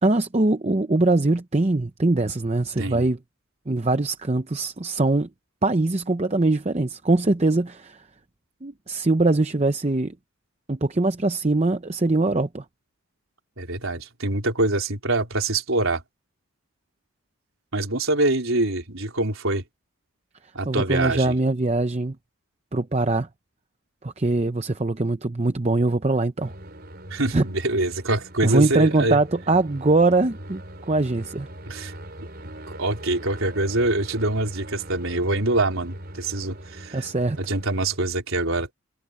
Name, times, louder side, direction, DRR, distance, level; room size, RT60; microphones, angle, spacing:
voice 1, 0.0-3.2 3.7-5.3 5.6-8.0 8.6-10.1 10.7-12.6 20.7-22.2 22.7-23.3 24.0-26.5 27.3-27.4 28.4-31.5 36.9-37.4, right 2 dB, 30° right, 0.7 m, -22 dB
voice 2, 2.8-3.1 13.6-16.0 17.7-19.6 20.5-21.3 27.1-29.2 31.7-31.9 32.4-37.1 37.4-38.7, right 2 dB, 70° right, 4.1 m, -25 dB
sound 1, 26.4-38.0, right 1 dB, 45° right, 5.0 m, -41 dB
head